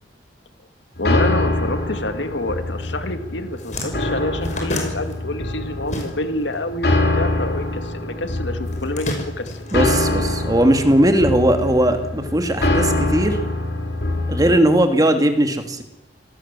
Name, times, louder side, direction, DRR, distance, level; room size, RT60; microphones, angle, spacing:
voice 1, 1.0-9.6 14.4-14.7, left 1 dB, 85° left, 8 dB, 2.3 m, -27 dB
sound 1, 1.0-14.6, left 2 dB, 60° left, 4.2 m, -24 dB
sound 2, 3.5-6.5 6.8-8.0 8.6-10.7, left 1 dB, 40° left, 5.9 m, -31 dB
voice 2, 9.7-13.4 14.3-15.8, right 1 dB, 20° right, 6 dB, 2.6 m, -18 dB
26.0 x 18.5 x 7.6 m, 0.89 s
head